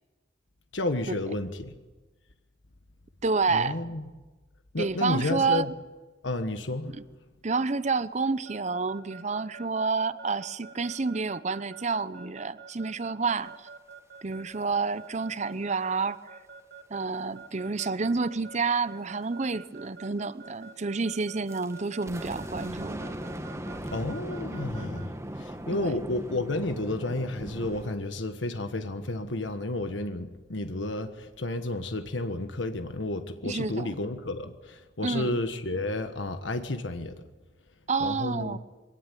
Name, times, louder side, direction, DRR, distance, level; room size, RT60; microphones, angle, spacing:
voice 1, 0.7-1.7 3.5-4.0 4.7-5.7 6.2-6.9 23.9-37.1 38.0-38.6, left 2 dB, 85° left, 1.4 m, -31 dB
voice 2, 3.2-3.8 4.8-5.7 6.9-7.0 7.4-13.5 14.2-16.2 16.9-23.1 25.7-26.0 33.4-33.9 35.0-35.4 37.9-38.6, right 4 dB, 40° right, 0.7 m, -29 dB
Keyboard (musical) / Alarm, 8.5-25.1, right 6 dB, 65° right, 2.2 m, -47 dB
sound 1, 21.5-28.0, equal, 15° right, 1.6 m, -38 dB
23.0 x 18.5 x 9.3 m
head